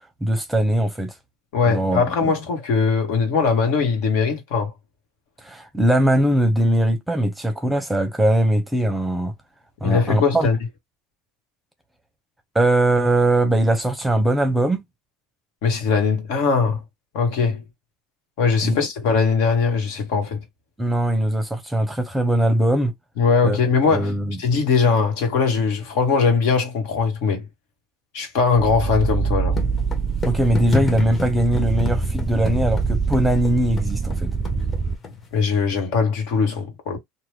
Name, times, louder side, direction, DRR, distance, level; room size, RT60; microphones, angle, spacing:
voice 1, 0.2-1.1 1.7-2.3 5.4-9.3 9.8-10.5 12.5-14.8 18.6-18.8 20.8-22.9 23.4-23.6 23.9-24.4 30.3-34.3, right 1 dB, 5° right, 0.7 m, -20 dB
voice 2, 1.5-4.7 9.8-10.6 15.6-16.8 17.1-17.6 18.4-20.4 23.2-24.1 24.4-27.5 28.1-29.6 35.3-37.0, left 5 dB, 75° left, 1.3 m, -20 dB
sound 1, 28.6-35.0, right 5 dB, 25° right, 0.3 m, -25 dB
sound 2, 29.5-35.3, left 4 dB, 30° left, 1.1 m, -30 dB
2.9 x 2.2 x 3.3 m
supercardioid pair, 105°, 0 cm